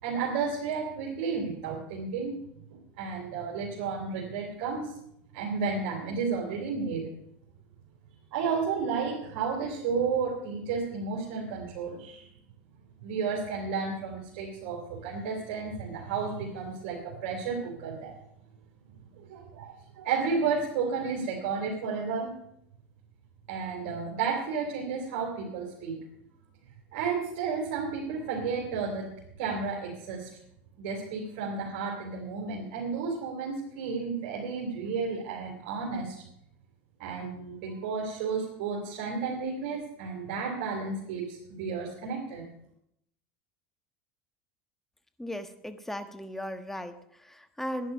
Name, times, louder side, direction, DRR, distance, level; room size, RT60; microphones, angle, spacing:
voice 1, 0.0-2.6 3.0-4.9 5.3-7.1 8.3-12.3 13.0-18.2 19.2-22.3 23.5-26.0 26.9-30.3 30.8-36.2 37.0-42.4, right 5 dB, 70° right, -3 dB, 3.4 m, -32 dB
voice 2, 45.2-47.9, equal, 5° left, 9 dB, 1.3 m, -37 dB
11.0 x 10.5 x 6.7 m, 0.75 s
supercardioid pair, 105°, 6 cm